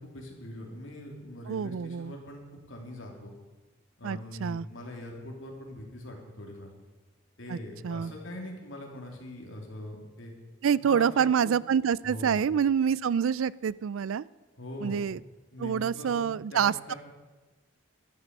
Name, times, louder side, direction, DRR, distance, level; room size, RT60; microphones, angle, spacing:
voice 1, 0.0-3.3 4.0-6.7 7.4-10.3 10.8-11.6 12.0-12.5 14.6-15.0 15.5-16.2 16.5-17.0, left 1 dB, 75° left, 1 dB, 3.1 m, -42 dB
voice 2, 1.5-2.1 4.0-4.7 7.5-7.6 7.8-8.1 10.6-14.2 14.8-15.2 15.6-16.9, right 7 dB, 85° right, 21 dB, 0.4 m, -27 dB
14.0 x 12.5 x 5.4 m, 1.2 s
head